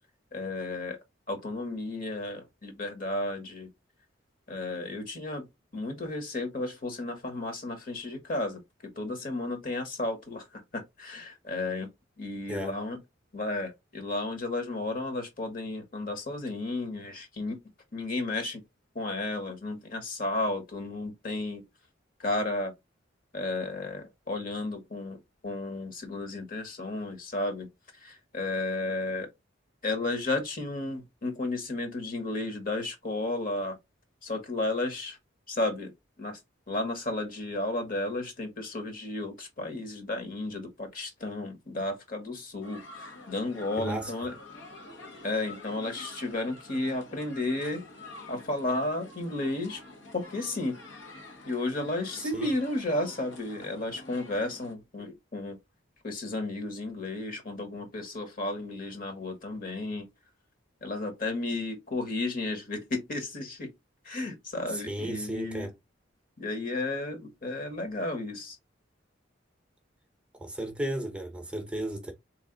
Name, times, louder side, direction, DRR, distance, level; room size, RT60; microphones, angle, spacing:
voice 1, 0.3-1.0 1.3-3.7 4.5-5.5 5.7-11.9 12.2-13.0 13.3-17.6 17.9-18.6 18.9-21.6 22.2-22.7 23.3-27.7 28.0-29.3 29.8-33.8 34.2-35.2 35.5-36.4 36.7-44.3 45.2-47.8 48.3-49.8 50.1-50.8 51.4-55.6 56.0-60.1 60.8-63.7 64.0-65.7 66.4-68.6, left 2 dB, 45° left, 1.2 m, -33 dB
sound 1, 42.6-54.7, left 2 dB, 80° left, 1.1 m, -47 dB
voice 2, 43.8-44.1 52.2-52.5 64.7-65.7 70.3-72.1, right 1 dB, 5° right, 0.7 m, -34 dB
3.6 x 3.2 x 3.8 m
head